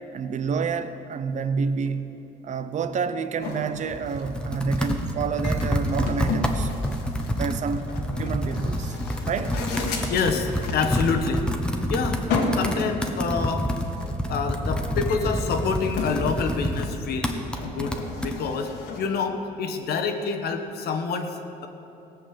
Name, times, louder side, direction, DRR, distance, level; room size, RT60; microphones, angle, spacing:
voice 1, 0.1-2.1 2.4-6.7 7.3-7.9 8.2-9.0 9.3-9.6, right 5 dB, 45° right, 11 dB, 0.7 m, -28 dB
sound 1, 3.4-19.0, left 3 dB, 85° left, 1.9 m, -35 dB
Computer keyboard, 3.7-18.4, equal, 5° left, 1.1 m, -28 dB
voice 2, 10.1-12.2 12.5-13.7 14.3-17.3 17.6-21.7, left 5 dB, 65° left, 5 dB, 1.3 m, -27 dB
17.0 x 6.5 x 7.8 m, 2.9 s
cardioid pair, 110°, 17 cm